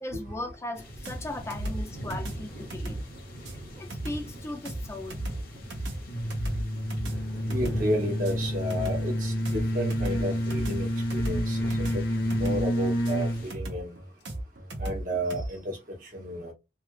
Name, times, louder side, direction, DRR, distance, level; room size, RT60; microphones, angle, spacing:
voice 1, 0.0-3.0 3.8-5.2, left 1 dB, 15° left, 0.4 m, -37 dB
sound 1, 0.8-13.5, equal, 55° left, 1.2 m, -43 dB
sound 2, 1.0-15.5, right 1 dB, 80° right, 0.9 m, -36 dB
sound 3, 6.1-13.5, equal, 75° left, 0.9 m, -29 dB
voice 2, 7.5-13.9 14.8-15.8 16.1-16.5, equal, 50° right, 1.2 m, -32 dB
3.2 x 2.4 x 3.1 m
head